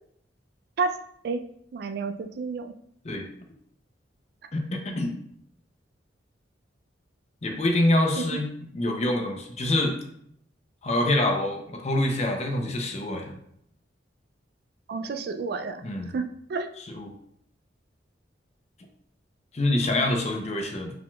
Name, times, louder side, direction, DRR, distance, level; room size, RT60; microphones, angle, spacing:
voice 1, 1.7-2.7 8.2-8.3 14.9-15.8 16.1-16.2 16.5-16.7, right 4 dB, 55° right, 7 dB, 0.3 m, -29 dB
voice 2, 4.5-5.2 7.4-8.5 8.7-10.0 10.8-13.4 15.8-16.1 16.9-17.1 19.5-20.9, left 1 dB, 35° left, 3 dB, 0.6 m, -26 dB
4.8 x 3.7 x 2.3 m, 0.70 s
head